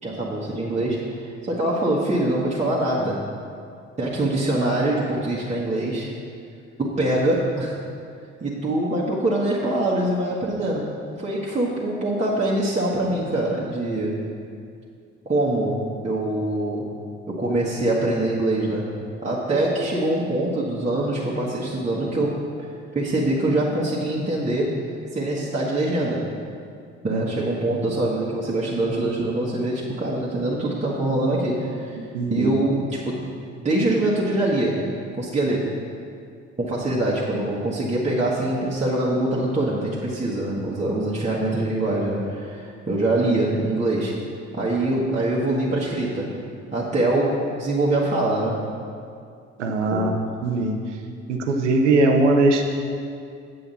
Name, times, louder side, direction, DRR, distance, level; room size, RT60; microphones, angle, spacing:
voice 1, 0.0-3.2 4.0-6.1 6.8-7.8 8.4-10.9 11.2-14.2 15.2-16.9 17.3-18.8 19.2-22.7 22.9-24.7 25.1-26.2 27.0-32.0 32.3-33.1 33.6-34.8 35.1-35.7 36.6-44.1 44.5-46.3 46.7-48.6 49.9-50.2, right 1 dB, 20° right, -6 dB, 1.5 m, -24 dB
voice 2, 32.1-32.6 49.6-50.7 51.3-52.6, right 2 dB, 80° right, 4 dB, 0.8 m, -20 dB
8.6 x 7.7 x 4.1 m, 2.4 s
figure-of-eight pair, 50°, 35 cm